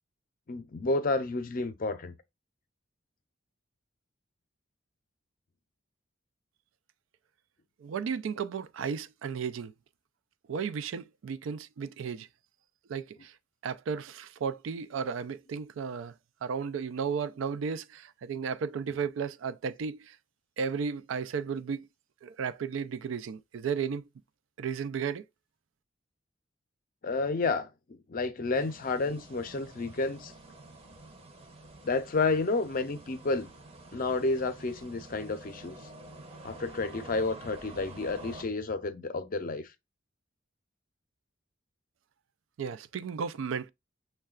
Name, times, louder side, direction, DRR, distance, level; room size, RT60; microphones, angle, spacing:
voice 1, 0.5-2.1 27.0-30.3 31.8-33.5 33.9-35.8 36.4-39.7, left 3 dB, 45° left, 0.5 m, -30 dB
voice 2, 7.8-9.7 10.5-12.3 12.9-13.3 13.6-16.1 16.4-20.2 20.6-21.9 22.2-24.1 24.6-25.2 42.6-43.7, right 6 dB, 80° right, 0.3 m, -34 dB
sound 1, 28.5-38.4, right 2 dB, 30° right, 0.7 m, -49 dB
6.4 x 2.2 x 2.3 m
head